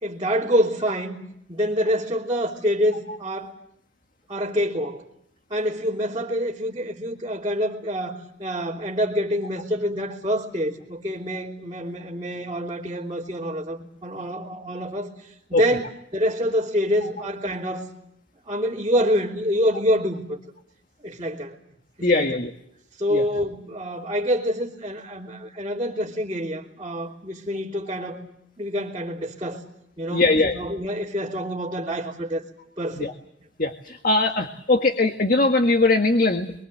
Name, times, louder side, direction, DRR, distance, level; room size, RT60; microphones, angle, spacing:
voice 1, 0.0-1.2 1.5-3.5 4.3-5.0 5.5-15.9 16.1-17.9 18.5-20.4 21.0-21.5 22.0-22.4 23.0-28.2 28.6-29.6 30.0-32.4 32.8-33.1, equal, 25° right, -5 dB, 3.1 m, -26 dB
voice 2, 22.0-22.5 23.1-23.2 30.1-30.6 33.0-33.1 33.6-36.5, left 2 dB, 50° left, 5 dB, 1.7 m, -20 dB
27.0 x 23.0 x 7.8 m, 0.73 s
head